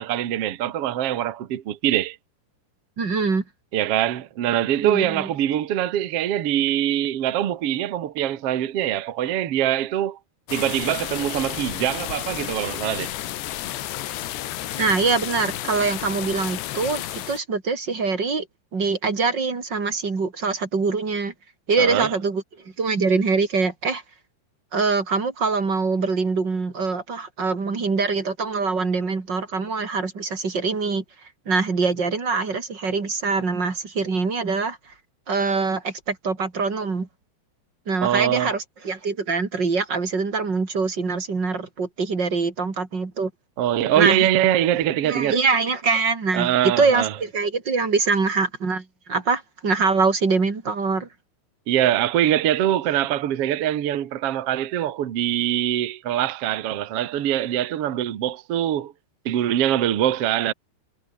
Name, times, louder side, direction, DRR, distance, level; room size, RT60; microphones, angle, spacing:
voice 1, 0.0-2.2 3.7-10.2 10.5-13.1 21.8-22.1 38.0-38.5 43.6-45.4 46.3-47.1 51.7-58.9 59.2-60.5, right 11 dB, 65° right, 1.5 m, -23 dB
voice 2, 3.0-3.4 4.8-5.3 14.8-18.5 18.7-21.3 21.7-22.4 22.8-24.0 24.7-31.0 31.5-34.8 35.3-37.1 37.9-43.3 44.0-44.3 45.0-51.1, right 4 dB, 25° right, 3.5 m, -24 dB
sound 1, 10.5-17.4, left 14 dB, 85° left, 3.6 m, -31 dB
omnidirectional pair, 5.0 m